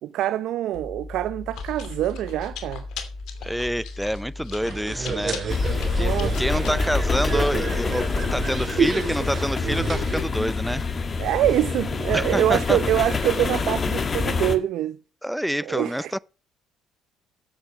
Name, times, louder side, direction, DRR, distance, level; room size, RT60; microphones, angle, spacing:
voice 1, 0.0-2.9 6.0-6.4 11.2-15.0 15.7-16.1, right 12 dB, 70° right, 0.7 m, -25 dB
Chewing mastication, 0.7-8.0, left 3 dB, 70° left, 2.7 m, -37 dB
voice 2, 3.4-5.4 6.0-10.9 12.1-12.8 15.2-16.2, equal, ahead, 0.5 m, -27 dB
sound 1, 4.6-10.2, right 5 dB, 45° right, 4.1 m, -29 dB
sound 2, 5.5-14.6, left 4 dB, 35° left, 1.8 m, -26 dB
12.0 x 7.9 x 6.2 m
supercardioid pair, 75°, 0 cm